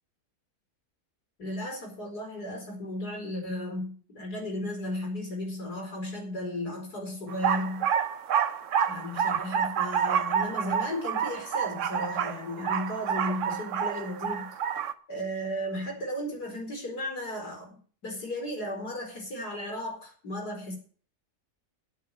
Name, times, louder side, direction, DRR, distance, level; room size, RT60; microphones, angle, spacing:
voice 1, 1.4-7.9 8.9-14.6 15.1-17.7 18.0-20.8, left 1 dB, 80° left, 2 dB, 5.2 m, -35 dB
sound 1, 7.3-14.9, right 8 dB, 60° right, 1.1 m, -29 dB
9.5 x 9.0 x 8.5 m, 0.43 s
omnidirectional pair, 1.6 m